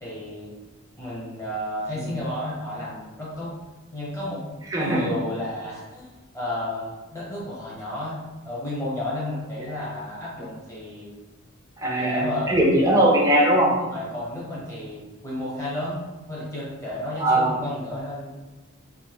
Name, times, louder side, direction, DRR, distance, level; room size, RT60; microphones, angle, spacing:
voice 1, 0.0-0.5 1.0-3.6 3.9-4.4 4.7-6.1 6.3-11.1 11.9-12.5 13.8-18.3, left 1 dB, 15° left, -7 dB, 0.8 m, -32 dB
voice 2, 4.7-5.0 9.6-9.8 11.8-13.7 17.2-17.5, right 1 dB, 15° right, -3 dB, 0.5 m, -20 dB
2.8 x 2.1 x 3.2 m, 1.2 s
head